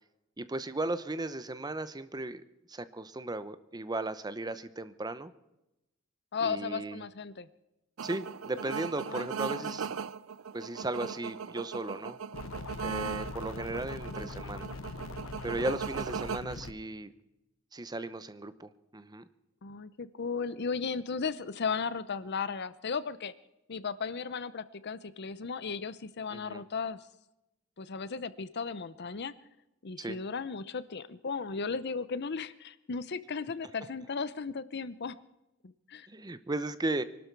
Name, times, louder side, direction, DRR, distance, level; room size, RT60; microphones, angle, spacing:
voice 1, 0.4-2.4 2.7-5.3 6.4-7.0 8.0-9.9 10.5-12.2 12.8-14.7 15.4-17.1 17.7-19.2 26.3-26.6 30.0-30.2 36.1-37.0, right 2 dB, 20° right, 13 dB, 0.8 m, -36 dB
voice 2, 6.3-7.5 9.1-9.8 12.9-13.1 19.6-23.3 23.7-27.1 27.8-29.3 29.8-35.2 35.6-36.1, left 5 dB, 55° left, 15 dB, 0.7 m, -36 dB
sound 1, 8.0-16.4, right 6 dB, 85° right, 0.5 m, -38 dB
sound 2, 12.3-16.7, left 3 dB, 85° left, 0.8 m, -42 dB
24.0 x 12.5 x 4.7 m, 0.91 s
head